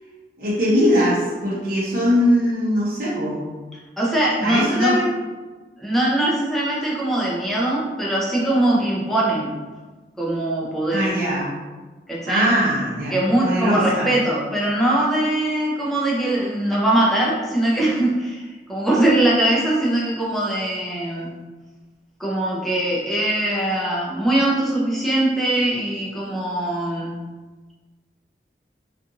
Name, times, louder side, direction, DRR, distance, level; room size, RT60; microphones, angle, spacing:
voice 1, 0.4-3.4 4.4-5.1 10.9-11.5 12.3-14.1, equal, 55° right, -8 dB, 0.7 m, -21 dB
voice 2, 4.0-5.0 5.8-9.5 10.2-11.1 12.1-12.5 13.1-21.4 22.2-27.2, right 1 dB, ahead, -5 dB, 0.5 m, -21 dB
2.5 x 2.4 x 2.8 m, 1.3 s
head